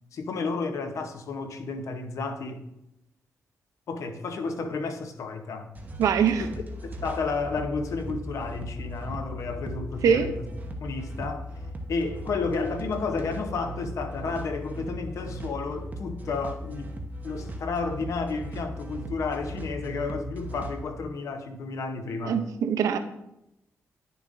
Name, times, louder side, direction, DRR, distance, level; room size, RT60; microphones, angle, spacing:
voice 1, 0.1-2.7 3.9-5.7 6.8-10.5 10.8-11.5 11.9-17.0 17.2-22.4, left 4 dB, 70° left, 7 dB, 0.8 m, -32 dB
sound 1, 5.7-20.8, equal, 30° right, 0.9 m, -38 dB
voice 2, 6.0-6.5 10.0-10.3 22.2-23.0, right 7 dB, 85° right, 9 dB, 0.6 m, -23 dB
10.0 x 6.8 x 2.6 m, 0.86 s
cardioid pair, 100°, 6 cm